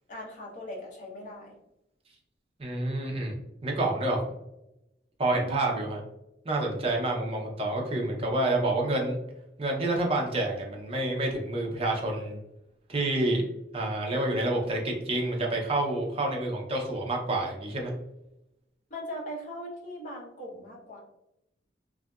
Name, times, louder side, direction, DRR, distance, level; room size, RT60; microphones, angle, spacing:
voice 1, 0.1-1.6 5.3-5.9 18.9-21.0, equal, 45° left, -3 dB, 0.8 m, -40 dB
voice 2, 2.6-3.4 3.6-4.2 5.2-6.0 6.4-9.2 9.6-12.4 12.9-13.4 13.7-17.9, right 2 dB, 30° right, 0 dB, 0.6 m, -28 dB
2.7 x 2.4 x 2.2 m, 0.87 s
head